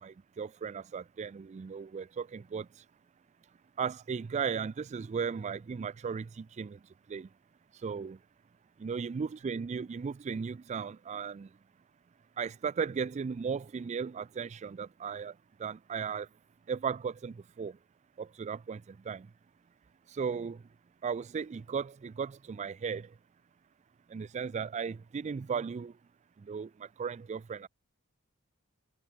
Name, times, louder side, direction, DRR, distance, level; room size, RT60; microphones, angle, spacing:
voice 1, 0.0-2.7 3.8-6.8 7.1-7.3 7.8-8.2 8.8-11.5 12.4-15.3 15.6-16.3 16.7-17.8 18.2-19.3 20.1-20.6 21.0-23.1 24.1-25.9 26.4-27.7, right 6 dB, 30° right, 0.3 m, -36 dB
head